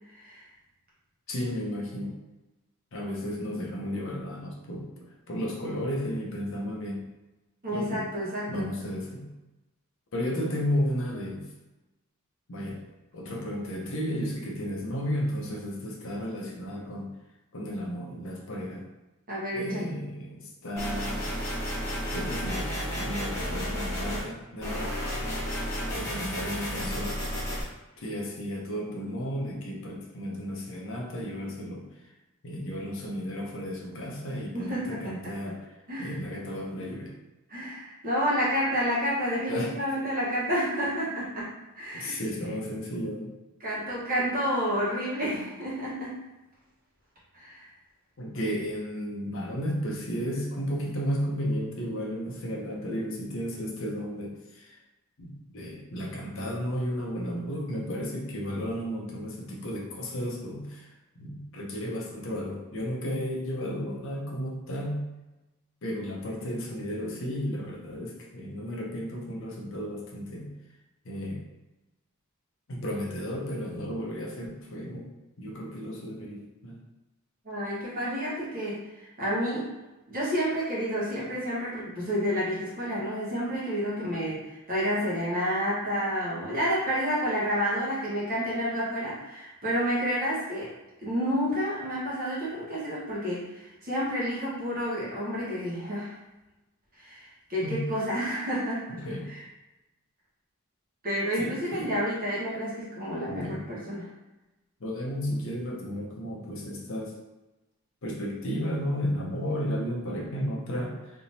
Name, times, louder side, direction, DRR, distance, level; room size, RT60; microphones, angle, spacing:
voice 1, 0.1-0.4 7.6-8.7 19.3-19.9 34.5-35.3 35.9-36.1 37.5-41.5 41.8-42.1 43.6-46.1 47.3-47.7 77.4-79.7 80.1-90.7 91.0-96.1 97.0-99.0 99.3-99.4 101.0-104.1, equal, 40° right, -7 dB, 1.3 m, -30 dB
voice 2, 1.3-2.1 2.9-7.0 7.7-8.1 8.5-9.3 10.1-11.4 12.5-12.8 13.1-17.1 17.5-18.9 19.5-21.3 22.1-24.9 25.9-27.1 28.0-31.9 32.4-35.7 36.0-37.1 39.5-39.7 41.9-43.3 48.2-54.8 55.2-65.0 65.8-70.5 71.0-71.5 72.7-75.1 75.4-76.8 97.6-97.9 98.9-99.3 101.4-101.9 103.3-103.6 104.8-107.1 108.0-111.2, equal, 60° left, -2 dB, 0.8 m, -33 dB
sound 1, 20.8-24.2 24.6-27.6, equal, 15° left, 1.2 m, -32 dB
3.5 x 2.9 x 2.8 m, 1.0 s
head